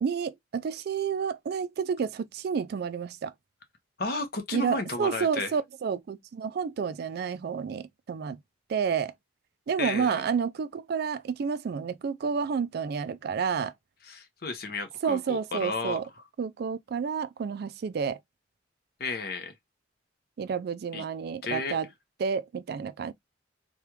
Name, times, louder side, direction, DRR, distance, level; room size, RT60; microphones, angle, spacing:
voice 1, 0.0-3.3 4.5-8.4 8.7-9.1 9.7-13.7 15.0-16.1 16.4-18.2 20.4-21.9 22.2-23.1, right 6 dB, 55° right, 0.3 m, -30 dB
voice 2, 4.0-5.5 9.8-10.2 14.0-16.0 19.0-19.5 20.9-21.0 21.4-21.8, left 3 dB, 55° left, 0.8 m, -33 dB
3.3 x 2.3 x 2.9 m
head